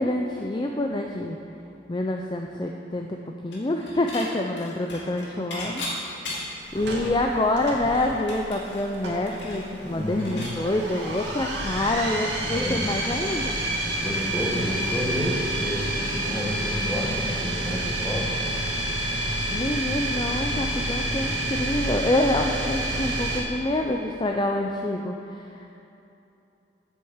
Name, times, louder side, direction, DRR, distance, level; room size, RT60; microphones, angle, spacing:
voice 1, 0.0-1.4 1.9-3.2 3.4-5.8 6.2-6.3 6.7-13.6 19.5-25.7, left 1 dB, 25° left, 2 dB, 0.5 m, -27 dB
Dishes pots and pans / Chink clink, 3.5-4.3 4.6-6.7 7.1-7.2 7.5-10.6, left 1 dB, 75° left, 2.2 m, -36 dB
sound 1, 6.7-23.4, right 1 dB, 70° right, 2.0 m, -29 dB
voice 2, 9.8-10.5 12.4-12.9 14.0-18.3, equal, 5° left, -3 dB, 1.4 m, -30 dB
sound 2, 15.0-20.2, right 1 dB, 40° right, 0.5 m, -41 dB
8.1 x 7.8 x 7.2 m, 2.8 s
head